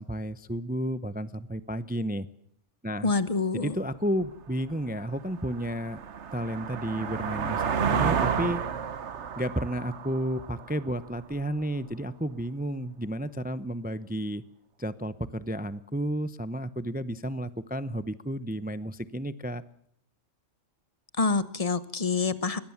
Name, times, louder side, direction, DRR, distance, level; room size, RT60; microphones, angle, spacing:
voice 1, 0.0-2.3 2.8-3.1 3.5-6.0 6.3-8.6 9.4-14.4 14.8-19.6, equal, 10° right, 14 dB, 0.4 m, -32 dB
voice 2, 3.0-3.8 21.2-22.6, left 4 dB, 30° left, 13 dB, 1.1 m, -26 dB
sound 1, 4.2-4.3 4.8-11.4, right 7 dB, 60° right, 1.3 m, -31 dB
22.0 x 18.5 x 7.2 m, 0.70 s
omnidirectional pair, 1.4 m